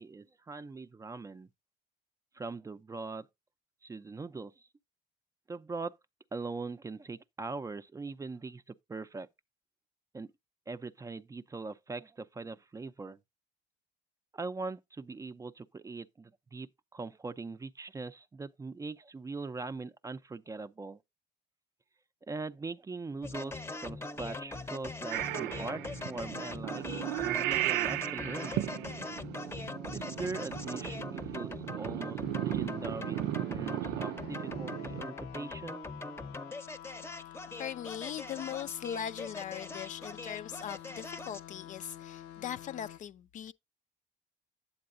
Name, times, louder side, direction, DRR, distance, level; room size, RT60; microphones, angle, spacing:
voice 1, 0.0-1.5 2.3-3.3 3.8-4.7 5.5-5.9 6.3-9.3 10.1-10.3 10.7-13.2 14.3-21.0 22.3-26.9 27.2-28.6 29.9-35.8, right 3 dB, 20° right, 0.5 m, -41 dB
sound 1, 23.2-41.5, left 2 dB, 15° left, 0.7 m, -41 dB
Purr / Meow, 25.1-35.0, right 16 dB, 90° right, 0.4 m, -36 dB
sound 2, 32.2-43.0, left 11 dB, 85° left, 0.8 m, -49 dB
voice 2, 37.6-43.5, left 9 dB, 50° left, 0.4 m, -40 dB
8.6 x 7.7 x 2.5 m
cardioid pair, 110°, 17 cm